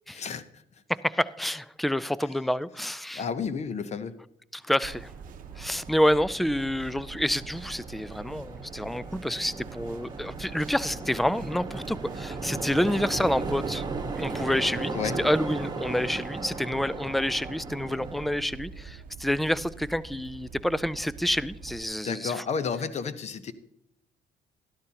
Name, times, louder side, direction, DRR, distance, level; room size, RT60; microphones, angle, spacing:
voice 1, 0.1-0.6 3.1-4.1 14.9-15.2 22.0-23.5, left 6 dB, 40° left, 0.8 m, -32 dB
voice 2, 0.9-3.2 4.5-5.1 5.6-13.8 14.2-22.3, left 1 dB, ahead, 0.3 m, -28 dB
sound 1, 4.8-18.3, right 3 dB, 25° right, 1.3 m, -37 dB
sound 2, 4.8-21.8, right 6 dB, 55° right, 0.8 m, -44 dB
12.5 x 12.0 x 2.9 m
cardioid pair, 110°, 17 cm